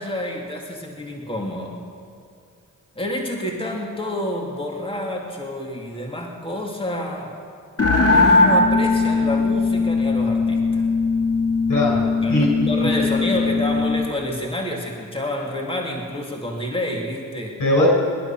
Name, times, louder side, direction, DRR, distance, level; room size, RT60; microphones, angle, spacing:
voice 1, 0.0-1.8 2.9-7.4 7.8-10.9 12.2-17.6, left 1 dB, 15° left, 0 dB, 2.5 m, -28 dB
sound 1, 7.8-14.1, left 3 dB, 50° left, 2.1 m, -19 dB
voice 2, 11.7-12.7 13.0-13.2 17.6-17.9, left 1 dB, 75° left, -2 dB, 5.2 m, -21 dB
21.5 x 11.0 x 5.9 m, 2.3 s
cardioid pair, 55°, 32 cm